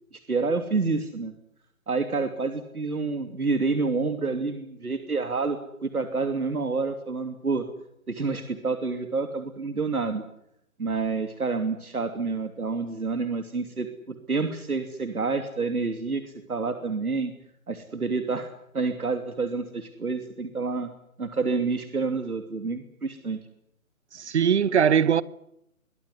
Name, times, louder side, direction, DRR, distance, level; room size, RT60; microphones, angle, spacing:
voice 1, 0.1-1.3 1.9-7.7 8.1-10.2 10.8-16.2 16.5-17.3 17.7-20.9 21.2-23.4, right 4 dB, 90° right, 3.0 m, -28 dB
voice 2, 24.1-25.2, right 8 dB, 50° right, 1.2 m, -21 dB
23.5 x 21.0 x 9.8 m
figure-of-eight pair, 155°, 43 cm